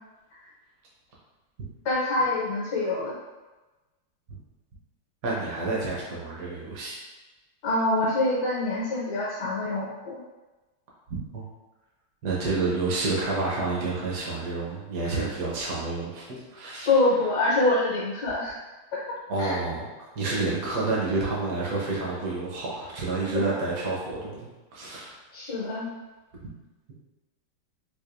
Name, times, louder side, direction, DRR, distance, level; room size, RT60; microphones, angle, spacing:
voice 1, 1.8-3.1 7.6-10.2 15.0-15.2 16.9-18.6 18.9-19.0 19.4-19.6 23.3-23.4 25.3-25.9, left 2 dB, 60° left, -7 dB, 1.3 m, -25 dB
voice 2, 5.2-7.0 11.3-11.4 12.2-16.9 19.3-19.8 20.1-25.1, right 3 dB, 55° right, -4 dB, 1.2 m, -29 dB
4.7 x 2.5 x 2.5 m, 1.1 s
omnidirectional pair, 2.3 m